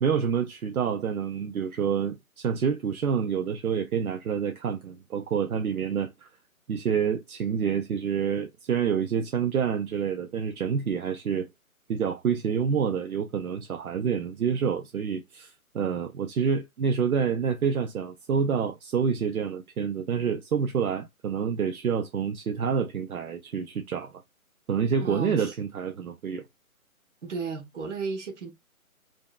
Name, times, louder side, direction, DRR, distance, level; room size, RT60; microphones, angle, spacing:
voice 1, 0.0-6.3 6.7-11.5 11.9-24.1 24.7-26.5, right 7 dB, 80° right, 0.5 m, -28 dB
voice 2, 25.0-25.5 27.2-28.5, right 5 dB, 55° right, 1.0 m, -34 dB
2.6 x 2.1 x 2.3 m
figure-of-eight pair, 145°, 43 cm